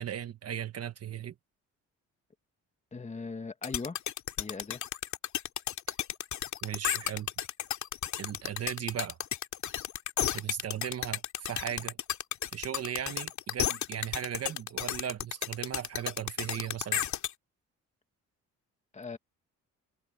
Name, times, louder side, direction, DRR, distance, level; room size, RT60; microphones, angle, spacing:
voice 1, 0.0-1.3 5.9-6.0 6.6-7.3 8.2-9.2 10.3-12.0 12.5-17.0, right 9 dB, 55° right, 1.4 m, -37 dB
voice 2, 2.9-4.0 4.4-4.8 18.9-19.2, left 4 dB, 25° left, 1.8 m, -39 dB
sound 1, 3.6-17.3, left 10 dB, 70° left, 2.6 m, -32 dB
cardioid pair, 90°, 30 cm